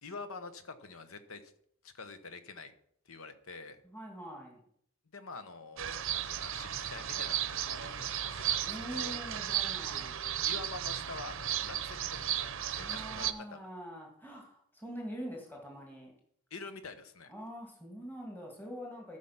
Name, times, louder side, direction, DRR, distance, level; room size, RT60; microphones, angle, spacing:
voice 1, 0.0-1.4 1.8-2.7 3.1-3.8 5.1-9.3 10.4-12.5 12.8-13.7 16.5-17.3, left 3 dB, 75° left, 10 dB, 1.1 m, -46 dB
voice 2, 3.8-4.6 8.6-10.2 12.8-16.1 17.3-19.2, equal, 10° left, -1 dB, 1.9 m, -44 dB
sound 1, 5.8-13.3, right 10 dB, 65° right, 0.7 m, -35 dB
14.0 x 5.0 x 5.7 m, 0.68 s
head